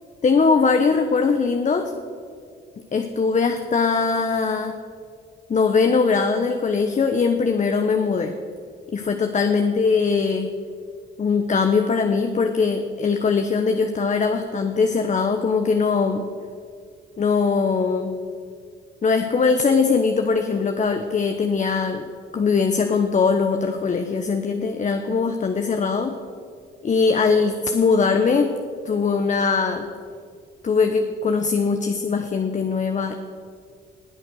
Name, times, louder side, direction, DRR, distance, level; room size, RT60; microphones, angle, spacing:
voice 1, 0.2-1.9 2.9-4.7 5.5-8.3 8.9-10.5 11.2-16.3 17.2-18.2 19.0-22.1 22.3-26.2 26.8-28.5 28.8-29.9 30.6-33.1, left 5 dB, 35° left, 6 dB, 1.0 m, -21 dB
20.0 x 7.7 x 6.4 m, 2.2 s
cardioid pair, 90°, 20 cm